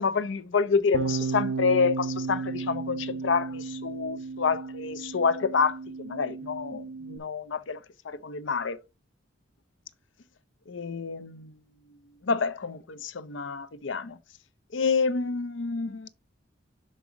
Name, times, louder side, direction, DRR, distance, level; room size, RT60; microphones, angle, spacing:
voice 1, 0.0-8.8 10.7-11.5 12.2-14.2 14.7-16.1, left 5 dB, 85° left, 0.6 m, -28 dB
Bass guitar, 0.9-7.2, right 4 dB, 85° right, 0.5 m, -34 dB
6.0 x 5.4 x 3.8 m
head